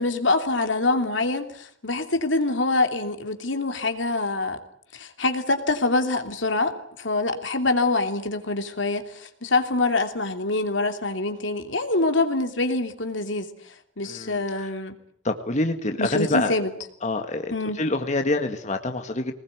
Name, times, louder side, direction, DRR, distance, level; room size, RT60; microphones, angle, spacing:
voice 1, 0.0-4.6 4.9-14.9 16.0-16.7 17.5-17.8, left 2 dB, 75° left, 6 dB, 3.0 m, -25 dB
voice 2, 14.1-14.7 15.2-16.5 17.0-17.5 17.8-19.3, left 2 dB, 40° left, 5 dB, 1.9 m, -26 dB
24.0 x 20.5 x 9.4 m, 0.65 s
head